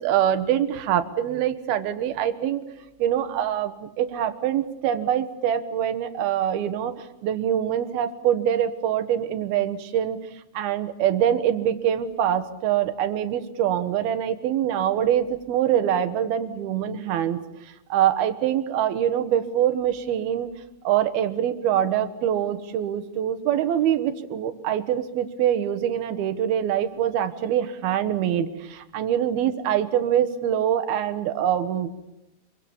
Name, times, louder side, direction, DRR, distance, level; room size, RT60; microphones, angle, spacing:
voice 1, 0.0-2.6 3.0-10.2 10.5-17.4 17.9-20.5 20.8-31.9, right 10 dB, 75° right, 10 dB, 3.1 m, -24 dB
26.0 x 23.5 x 7.3 m, 0.85 s
omnidirectional pair, 4.6 m